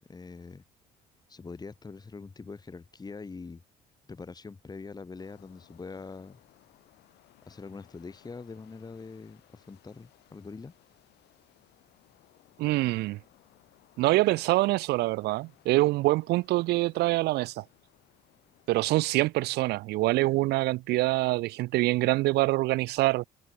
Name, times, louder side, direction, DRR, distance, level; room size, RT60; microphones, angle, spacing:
voice 1, 0.1-0.6 1.3-3.6 4.1-6.4 7.5-10.7, left 4 dB, 25° left, 4.0 m, -43 dB
sound 1, 5.2-19.3, left 16 dB, 80° left, 5.2 m, -62 dB
voice 2, 12.6-13.2 14.0-17.6 18.7-23.2, right 19 dB, 75° right, 0.5 m, -25 dB
cardioid pair, 110°, 17 cm